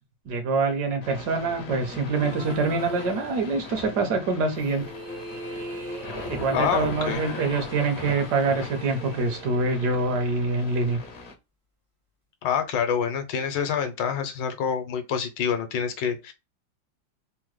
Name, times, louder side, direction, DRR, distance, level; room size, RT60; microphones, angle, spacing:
voice 1, 0.3-4.9 6.3-11.0, right 3 dB, 70° right, 1.2 m, -25 dB
sound 1, 1.0-11.3, left 3 dB, 60° left, 0.7 m, -40 dB
sound 2, 2.1-3.8 4.5-10.6, equal, 35° right, 0.5 m, -41 dB
voice 2, 6.5-7.2 12.4-16.3, left 7 dB, 80° left, 1.3 m, -27 dB
3.6 x 2.0 x 3.0 m
omnidirectional pair, 2.0 m